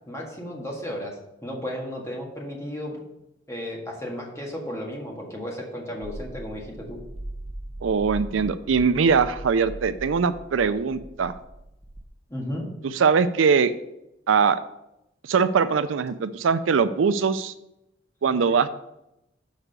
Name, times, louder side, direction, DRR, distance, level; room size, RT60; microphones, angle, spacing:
voice 1, 0.1-3.0 3.5-7.0 12.3-12.7, equal, 15° left, -1 dB, 1.7 m, -34 dB
sound 1, 6.0-12.0, right 1 dB, 30° right, 0.6 m, -39 dB
voice 2, 7.8-11.3 12.8-13.7 14.3-14.6 15.2-17.5 18.2-18.7, right 5 dB, 80° right, 12 dB, 0.4 m, -21 dB
6.5 x 4.9 x 6.6 m, 0.87 s
head